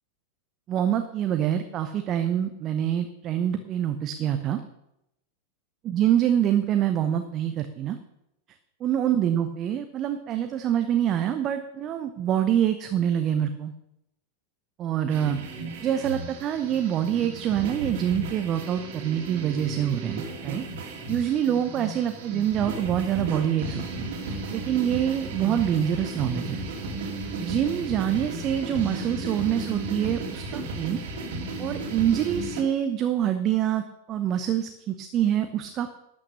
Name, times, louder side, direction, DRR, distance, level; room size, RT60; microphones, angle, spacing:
voice 1, 0.7-4.6 5.8-8.0 8.8-13.7 14.8-15.4 15.8-26.6 27.4-31.0 31.6-35.9, right 10 dB, 30° right, 8 dB, 0.8 m, -26 dB
sound 1, 15.1-32.6, right 2 dB, 55° right, 2.4 m, -34 dB
12.0 x 8.7 x 6.5 m, 0.86 s
figure-of-eight pair, 90°, 0 cm